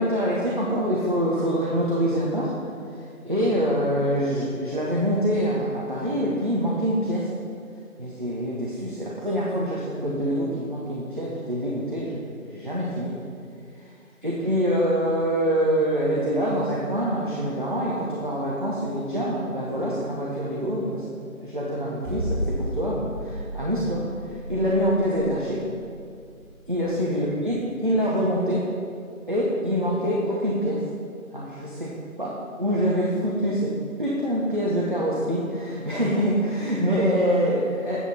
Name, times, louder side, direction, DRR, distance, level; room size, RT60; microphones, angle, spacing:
voice 1, 0.0-2.6 3.0-7.3 8.0-13.1 14.2-25.6 26.7-28.7 29.3-30.8 31.3-31.9 32.2-33.7 34.0-38.0, equal, 35° right, -5 dB, 0.9 m, -25 dB
sound 1, 22.0-28.2, equal, 15° right, 1.7 m, -33 dB
8.4 x 7.3 x 4.2 m, 2.3 s
figure-of-eight pair, 170°, 43 cm